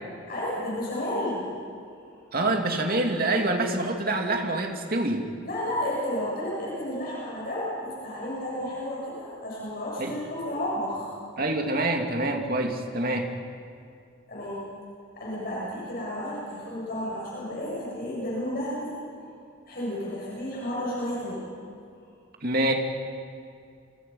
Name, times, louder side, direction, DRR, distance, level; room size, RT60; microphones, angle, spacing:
voice 1, 0.3-1.5 5.4-11.1 14.3-14.6 15.1-19.3 19.7-21.4, left 1 dB, 50° left, -6 dB, 7.6 m, -32 dB
voice 2, 2.3-5.3 10.0-10.1 11.4-13.3 22.4-22.7, right 2 dB, 50° right, 3 dB, 2.6 m, -26 dB
29.0 x 25.0 x 5.6 m, 2.4 s
head